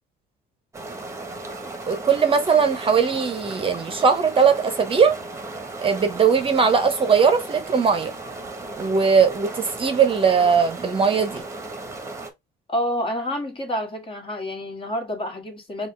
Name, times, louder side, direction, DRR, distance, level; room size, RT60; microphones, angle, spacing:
sound 1, 0.7-12.3, right 2 dB, 15° right, 1.1 m, -36 dB
voice 1, 1.9-5.2 5.8-8.1 8.8-11.4, right 6 dB, 30° right, 0.8 m, -19 dB
voice 2, 12.7-15.9, equal, 30° left, 1.7 m, -28 dB
5.4 x 2.4 x 3.3 m
cardioid pair, 110°, 17 cm